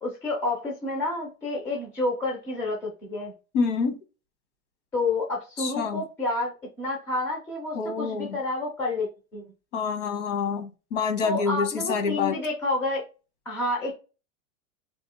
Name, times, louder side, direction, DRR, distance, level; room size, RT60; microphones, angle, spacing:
voice 1, 0.0-3.3 4.9-6.5 6.8-9.1 9.3-9.4 11.2-13.0 13.5-13.9, left 2 dB, 5° left, 0.5 m, -29 dB
voice 2, 3.5-4.0 5.6-6.0 7.7-8.4 9.7-12.4, left 5 dB, 60° left, 1.4 m, -27 dB
3.6 x 3.5 x 4.2 m
supercardioid pair, 175°, 40 cm